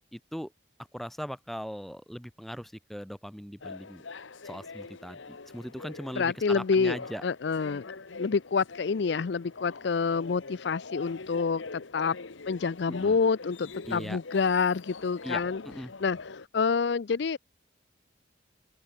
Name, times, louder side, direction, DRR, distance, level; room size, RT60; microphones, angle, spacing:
voice 1, 0.1-0.5 0.9-4.0 4.4-7.2 12.9-13.2 13.9-14.2 15.2-15.9, equal, ahead, 1.0 m, -39 dB
sound 1, 3.6-16.5, left 4 dB, 85° left, 1.2 m, -44 dB
voice 2, 6.2-7.0 7.2-12.2 12.5-15.6 16.0-17.4, left 5 dB, 65° left, 0.5 m, -28 dB
open air
head